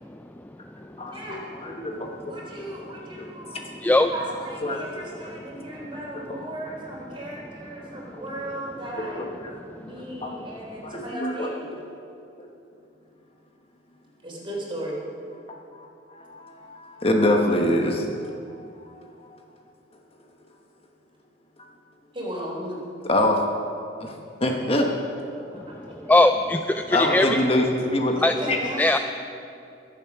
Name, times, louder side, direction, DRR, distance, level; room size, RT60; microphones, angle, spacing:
voice 1, 1.0-2.3 2.7-2.9 3.2-3.3 3.5-3.6 4.6-5.2 6.3-6.4 8.1-8.5 9.2-9.5 10.2-11.8 12.4-12.5 15.7-19.0 23.1-23.3 24.0-24.1 24.4-24.9 26.9-28.1 28.5-28.7, left 1 dB, 30° left, 2 dB, 1.2 m, -26 dB
voice 2, 2.2-3.6 4.1-9.4 9.8-11.5 14.2-15.0 22.1-22.8 25.3-26.2 28.1-28.8, right 1 dB, 30° right, -3 dB, 3.6 m, -36 dB
voice 3, 26.0-27.4 28.2-28.3 28.8-29.0, left 2 dB, 10° left, 7 dB, 0.3 m, -19 dB
22.0 x 7.6 x 5.9 m, 2.6 s
head